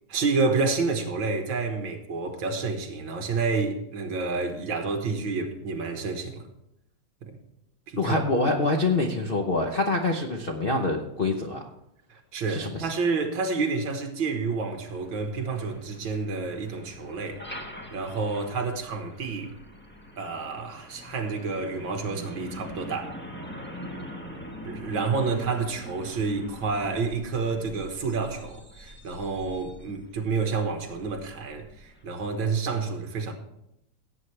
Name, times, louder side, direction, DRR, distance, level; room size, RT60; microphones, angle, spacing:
voice 1, 0.1-6.5 7.2-7.4 7.9-8.1 12.1-17.4 17.9-19.5 20.2-23.2 24.6-33.3, right 4 dB, 65° right, 2.1 m, -29 dB
voice 2, 8.0-11.6 12.5-12.9, left 2 dB, 60° left, 0.5 m, -25 dB
Truck, 14.6-32.2, equal, 5° left, 0.9 m, -43 dB
16.5 x 8.5 x 3.3 m
omnidirectional pair, 2.3 m